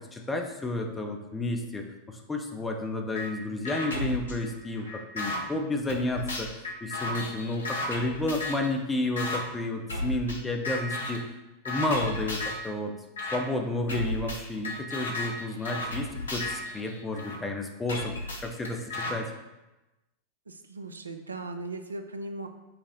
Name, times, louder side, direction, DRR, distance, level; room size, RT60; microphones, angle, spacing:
voice 1, 0.1-1.9 2.3-4.9 5.1-11.2 11.7-12.9 13.3-18.1 18.4-19.3, left 2 dB, 10° left, 3 dB, 0.5 m, -31 dB
sound 1, 3.1-3.3 3.6-5.4 5.9-8.7 9.2-9.4 9.9-10.4 10.6-11.2 11.6-12.7 13.2-13.4 13.9-17.4 17.9-19.1, left 2 dB, 70° left, 0.6 m, -34 dB
voice 2, 20.5-22.5, right 2 dB, 75° right, 7 dB, 0.4 m, -38 dB
5.6 x 2.0 x 4.0 m, 1.0 s
figure-of-eight pair, 90°, 0 cm